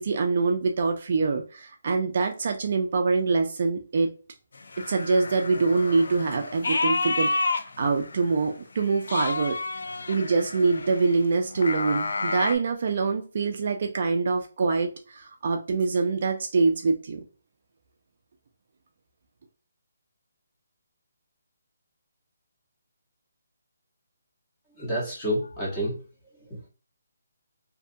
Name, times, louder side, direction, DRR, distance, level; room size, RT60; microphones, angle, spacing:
voice 1, 0.0-4.1 4.8-9.6 10.1-17.3, right 4 dB, 45° right, 4 dB, 0.3 m, -25 dB
sound 1, 4.6-8.4 8.8-12.6, left 3 dB, 70° left, 0.3 m, -30 dB
voice 2, 24.8-26.0 26.5-26.7, equal, 10° left, -6 dB, 0.8 m, -29 dB
2.6 x 2.4 x 2.5 m, 0.35 s
hypercardioid pair, 170°, 0 cm